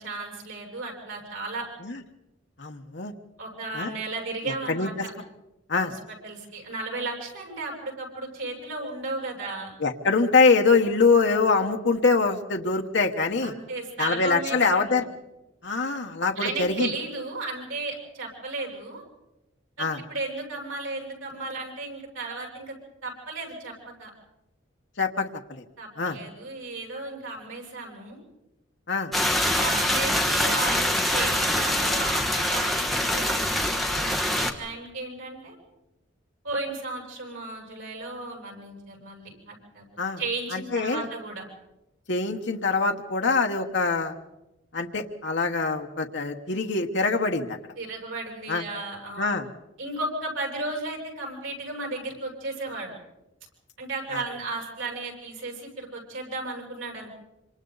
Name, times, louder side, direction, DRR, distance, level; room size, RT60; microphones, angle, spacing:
voice 1, 0.0-1.7 3.4-5.1 5.8-9.7 13.4-15.0 16.4-19.0 19.8-22.7 23.0-23.7 24.0-24.1 25.8-28.2 29.5-35.6 36.4-39.8 40.2-41.4 47.8-49.3 49.8-52.9 53.8-57.1, right 3 dB, 85° right, 0 dB, 8.0 m, -34 dB
voice 2, 2.6-3.1 3.7-3.9 4.4-4.9 5.7-5.9 9.8-13.5 14.0-15.0 15.6-16.9 19.8-20.0 25.0-25.6 26.0-26.2 28.9-29.1 40.0-40.2 40.5-41.1 42.1-44.1 44.7-47.6 48.5-48.6 49.2-49.5 54.1-54.2, left 4 dB, 65° left, 3 dB, 1.2 m, -24 dB
sound 1, 29.1-34.5, left 1 dB, ahead, 1.4 m, -24 dB
27.0 x 26.5 x 4.0 m, 0.96 s
head